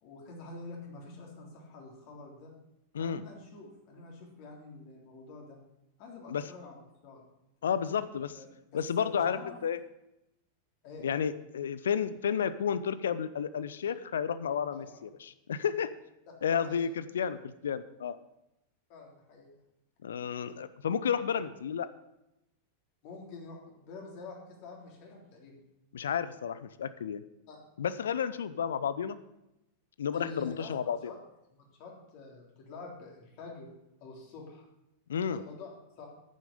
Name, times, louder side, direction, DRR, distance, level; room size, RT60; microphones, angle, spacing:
voice 1, 0.0-2.5 3.0-5.6 6.0-7.2 7.6-8.0 8.3-9.6 10.8-11.1 14.7-15.0 16.6-16.9 18.9-19.5 23.0-25.6 27.5-27.6 30.1-30.7 31.0-31.2 31.5-33.7 34.0-34.6 35.3-35.7 36.0-36.1, left 3 dB, 45° left, -1 dB, 3.4 m, -47 dB
voice 2, 7.6-8.3 8.7-9.8 11.0-14.9 15.2-15.9 16.4-18.2 20.0-21.9 25.9-27.2 27.8-29.2 30.0-31.0 35.1-35.4, left 7 dB, 65° left, 14 dB, 0.6 m, -31 dB
10.5 x 9.3 x 5.2 m, 0.89 s
figure-of-eight pair, 90°, 0 cm